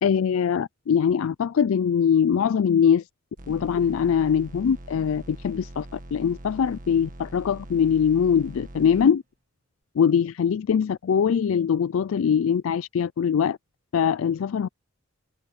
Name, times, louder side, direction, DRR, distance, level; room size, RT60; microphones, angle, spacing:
voice 1, 0.0-3.0 3.5-9.2 10.0-13.6 13.9-14.7, left 7 dB, 75° left, 0.4 m, -22 dB
sound 1, 3.4-9.1, right 1 dB, 40° right, 1.8 m, -43 dB
open air
head